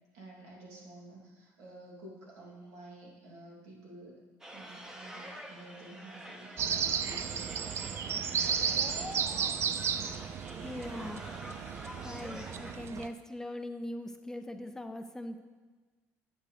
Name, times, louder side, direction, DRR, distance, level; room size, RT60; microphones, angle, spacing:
voice 1, 0.1-4.2 4.5-7.5 8.4-8.6, right 2 dB, 80° right, -4 dB, 3.0 m, -51 dB
sound 1, 4.4-12.7, equal, 10° right, 0.9 m, -47 dB
sound 2, 6.6-13.1, right 7 dB, 45° right, 0.5 m, -33 dB
voice 2, 10.6-11.6 12.0-15.4, left 1 dB, 10° left, 7 dB, 0.5 m, -41 dB
9.9 x 8.0 x 3.4 m, 1.4 s
cardioid pair, 125°, 6 cm